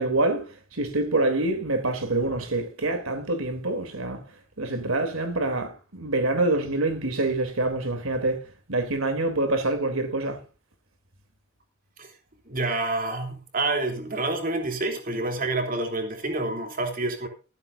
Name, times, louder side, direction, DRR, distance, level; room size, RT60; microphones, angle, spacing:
voice 1, 0.0-4.2 4.6-8.4 8.7-10.4, right 2 dB, 85° right, 3.3 m, -26 dB
voice 2, 12.5-17.3, right 2 dB, 40° right, 3.4 m, -28 dB
14.5 x 14.5 x 2.7 m
head